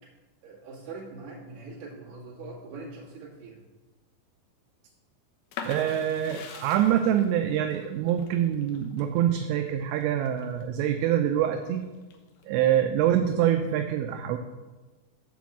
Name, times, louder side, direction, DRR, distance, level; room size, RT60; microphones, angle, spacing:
voice 1, 0.4-3.6, right 3 dB, 45° right, -5 dB, 2.7 m, -42 dB
sound 1, 5.5-11.1 11.6-12.4, left 6 dB, 75° left, 2.3 m, -43 dB
voice 2, 5.7-11.8 12.5-14.4, right 10 dB, 85° right, 6 dB, 2.6 m, -25 dB
7.6 x 5.2 x 7.1 m, 1.2 s
omnidirectional pair, 5.4 m